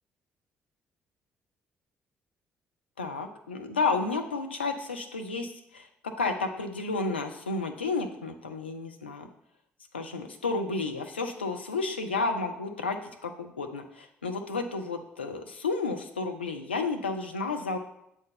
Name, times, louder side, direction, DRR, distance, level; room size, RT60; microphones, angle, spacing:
voice 1, 3.0-9.3 9.9-17.8, left 3 dB, 85° left, 5 dB, 0.4 m, -31 dB
7.6 x 2.7 x 5.6 m, 0.78 s
figure-of-eight pair, 45°, 6 cm